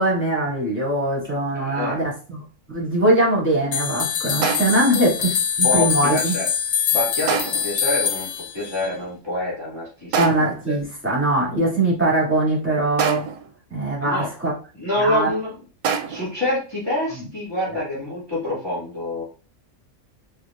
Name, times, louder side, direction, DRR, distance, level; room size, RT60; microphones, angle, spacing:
voice 1, 0.0-2.4 2.7-6.3 10.1-13.3 13.7-14.5 15.0-15.3 17.7-17.8, right 1 dB, 10° right, -5 dB, 2.3 m, -21 dB
voice 2, 1.5-2.0 5.6-6.5 6.9-8.3 8.5-10.2 10.7-10.8 11.6-11.7 14.0-14.3 14.8-15.5 16.1-19.2, left 1 dB, 15° left, -7 dB, 1.9 m, -26 dB
sound 1, 3.7-8.9, left 8 dB, 70° left, 0.9 m, -24 dB
sound 2, 4.4-4.9 7.3-7.8 10.1-10.7 13.0-13.6 15.8-16.4, right 7 dB, 80° right, 1.0 m, -26 dB
4.8 x 3.5 x 2.5 m, 0.36 s
omnidirectional pair, 1.5 m